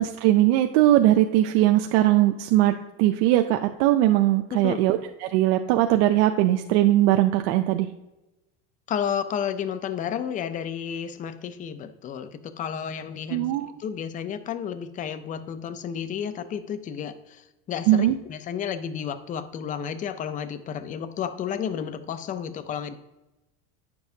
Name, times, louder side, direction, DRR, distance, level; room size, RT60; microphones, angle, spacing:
voice 1, 0.0-7.9 13.3-13.7 17.9-18.2, right 14 dB, 70° right, 6 dB, 0.5 m, -20 dB
voice 2, 4.5-4.8 8.9-23.0, left 8 dB, 25° left, 12 dB, 0.4 m, -32 dB
8.9 x 6.9 x 2.7 m, 1.0 s
supercardioid pair, 130°, 34 cm